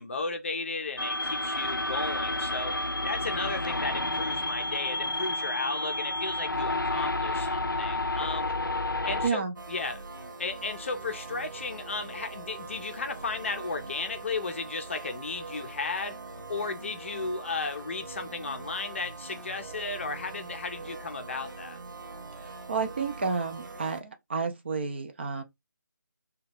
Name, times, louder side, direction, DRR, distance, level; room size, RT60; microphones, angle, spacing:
voice 1, 0.0-2.7 3.0-8.5 9.0-9.4 9.7-10.0 10.4-16.2 16.5-21.8, left 4 dB, 40° left, 0.5 m, -34 dB
sound 1, 1.0-9.3, left 2 dB, 90° left, 0.4 m, -30 dB
voice 2, 9.2-9.5 22.4-25.4, right 5 dB, 35° right, 0.4 m, -31 dB
sound 2, 9.6-24.0, right 3 dB, 75° right, 0.6 m, -43 dB
2.8 x 2.3 x 3.3 m
figure-of-eight pair, 155°, 11 cm